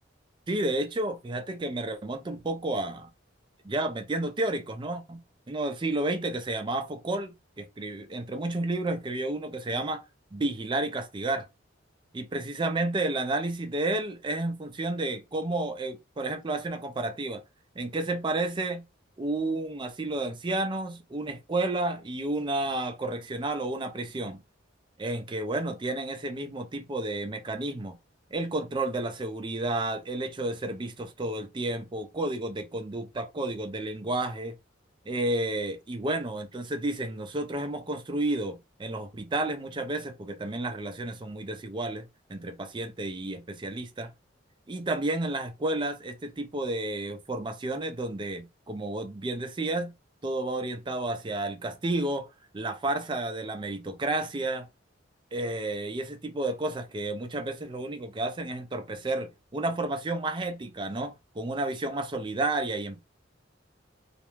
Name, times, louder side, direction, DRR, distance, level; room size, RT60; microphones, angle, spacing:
voice 1, 0.5-3.1 3.6-5.2 5.5-10.0 10.3-11.5 12.1-17.4 17.8-18.8 19.2-24.4 25.0-28.0 28.3-34.6 35.1-44.1 44.7-49.9 50.2-52.3 52.5-54.7 55.3-63.0, right 2 dB, 25° right, 0.4 m, -31 dB
2.4 x 2.1 x 3.0 m
head